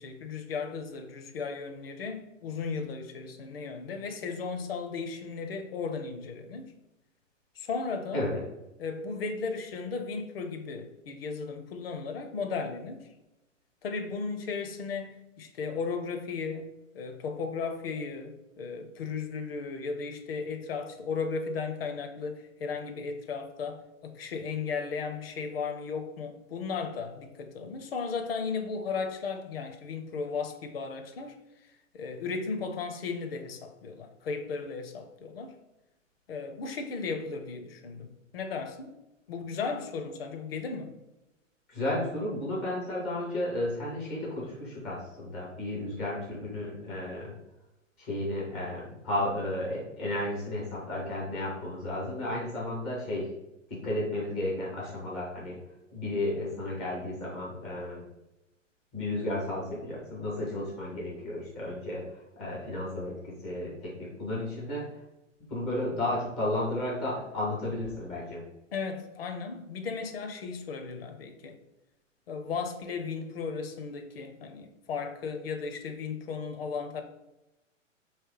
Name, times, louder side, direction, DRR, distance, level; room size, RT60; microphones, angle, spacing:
voice 1, 0.0-6.7 7.5-8.3 8.8-13.1 13.8-31.4 31.9-35.5 36.3-38.9 39.3-41.0 68.7-71.5 72.3-77.0, left 5 dB, 50° left, 6 dB, 0.7 m, -35 dB
voice 2, 41.7-47.3 48.0-53.3 53.7-55.6 55.9-58.0 58.9-62.0 62.4-64.8 65.5-68.4, left 1 dB, 10° left, -5 dB, 0.3 m, -33 dB
3.2 x 3.1 x 4.6 m, 0.95 s
figure-of-eight pair, 110°, 39 cm